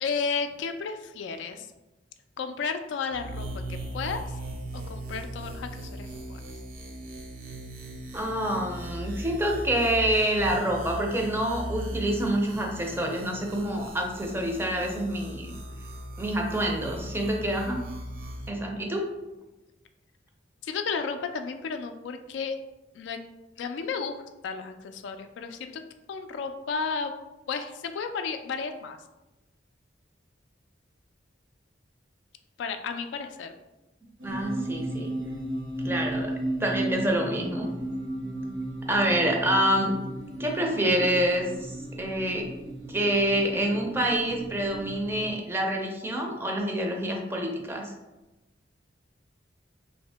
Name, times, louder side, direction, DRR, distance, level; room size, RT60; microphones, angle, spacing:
voice 1, 0.0-1.7 2.4-4.4 4.7-6.4 20.6-22.6 22.9-23.2 23.6-25.8 26.1-27.1 27.5-29.0 32.6-33.5, left 5 dB, 70° left, 7 dB, 0.3 m, -33 dB
sound 1, 3.1-18.5, right 1 dB, 50° right, 0.6 m, -38 dB
voice 2, 8.1-15.6 16.2-17.8 18.5-19.1 34.2-35.1 35.8-36.3 36.6-37.7 38.9-40.0 40.4-42.5 42.9-47.9, right 1 dB, 15° right, 1 dB, 0.5 m, -27 dB
sound 2, 34.2-45.3, right 1 dB, 75° right, 1.0 m, -35 dB
2.8 x 2.7 x 3.3 m, 1.0 s
head